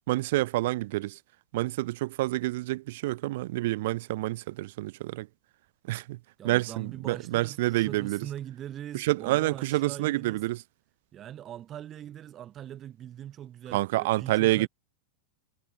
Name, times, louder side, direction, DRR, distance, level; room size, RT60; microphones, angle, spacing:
voice 1, 0.1-1.2 1.5-5.3 5.9-6.2 6.4-8.3 8.9-10.6 13.7-14.7, right 18 dB, 50° right, 0.9 m, -28 dB
voice 2, 6.4-10.4 11.1-14.7, right 11 dB, 30° right, 2.7 m, -41 dB
figure-of-eight pair, 90°, 0 cm